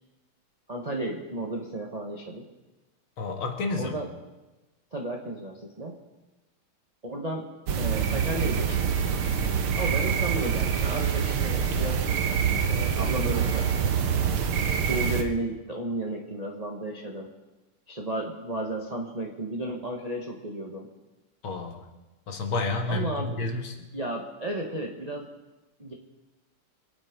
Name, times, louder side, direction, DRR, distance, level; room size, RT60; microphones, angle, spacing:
voice 1, 0.7-2.5 3.8-4.1 4.9-6.0 7.0-7.5 7.8-9.0 9.7-12.0 12.7-13.7 14.5-17.3 17.9-20.9 22.9-23.4 23.9-25.3 25.8-25.9, right 1 dB, 20° right, -1 dB, 1.1 m, -33 dB
voice 2, 3.2-3.9 21.4-21.9 22.3-23.8, left 3 dB, 70° left, 3 dB, 2.5 m, -30 dB
sound 1, 7.7-15.2, right 7 dB, 75° right, 2.0 m, -26 dB
25.0 x 9.2 x 5.2 m, 1.1 s
omnidirectional pair, 2.4 m